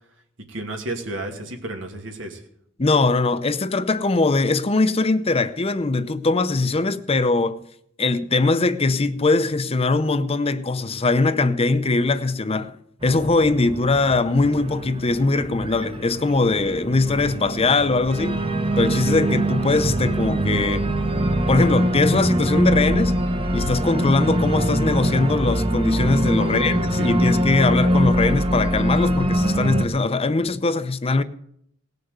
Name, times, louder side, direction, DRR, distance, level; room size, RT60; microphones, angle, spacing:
voice 1, 0.5-2.4 26.4-27.3, right 1 dB, 80° right, 2.5 m, -32 dB
voice 2, 2.8-7.6 8.0-12.8 13.0-18.4 18.8-20.9 21.5-23.1 23.5-31.2, left 3 dB, 30° left, 0.7 m, -21 dB
Organ, 13.0-29.8, right 1 dB, 30° right, 1.0 m, -23 dB
18.5 x 6.6 x 8.1 m
head